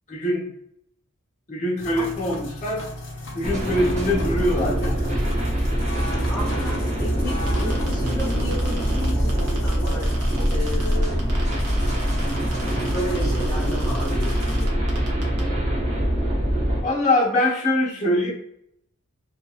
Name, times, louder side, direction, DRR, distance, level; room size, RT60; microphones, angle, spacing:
voice 1, 0.1-0.5 1.5-2.8 3.3-5.0 16.8-18.3, left 1 dB, 35° left, -5 dB, 0.9 m, -23 dB
sound 1, 1.8-14.7, left 2 dB, 60° left, 0.5 m, -37 dB
sound 2, 3.4-16.8, right 1 dB, 30° right, 0.6 m, -23 dB
voice 2, 5.9-10.1 10.5-11.2 12.6-14.7, left 1 dB, 15° left, -8 dB, 0.4 m, -33 dB
sound 3, 7.5-15.4, right 3 dB, 90° right, 0.7 m, -39 dB
2.7 x 2.1 x 2.3 m, 0.73 s
head